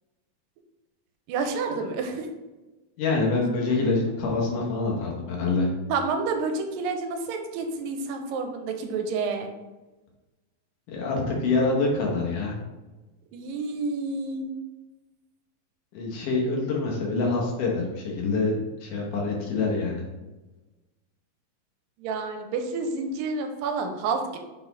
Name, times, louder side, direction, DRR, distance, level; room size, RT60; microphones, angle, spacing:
voice 1, 1.3-2.3 5.9-9.5 13.3-14.5 22.0-24.4, right 4 dB, 85° right, 5 dB, 2.3 m, -29 dB
voice 2, 3.0-5.7 10.9-12.6 15.9-18.5 18.8-20.1, left 3 dB, 70° left, -2 dB, 2.5 m, -26 dB
5.9 x 4.0 x 3.9 m, 1.1 s
omnidirectional pair, 4.0 m